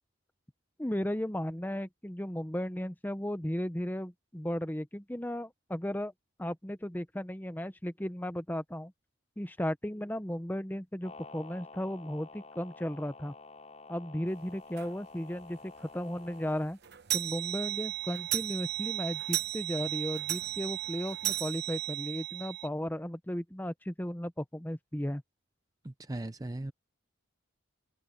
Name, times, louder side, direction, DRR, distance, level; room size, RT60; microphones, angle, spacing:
voice 1, 0.8-6.1 6.4-8.9 9.4-13.3 13.9-16.8 17.1-25.2, equal, 10° left, 0.9 m, -35 dB
sound 1, 11.0-16.7, left 3 dB, 30° left, 4.9 m, -50 dB
sound 2, 14.8-14.9 15.4-15.5 15.8-15.9 16.2-22.7, right 15 dB, 50° right, 0.9 m, -35 dB
voice 2, 25.8-26.7, right 1 dB, 15° right, 0.5 m, -38 dB
head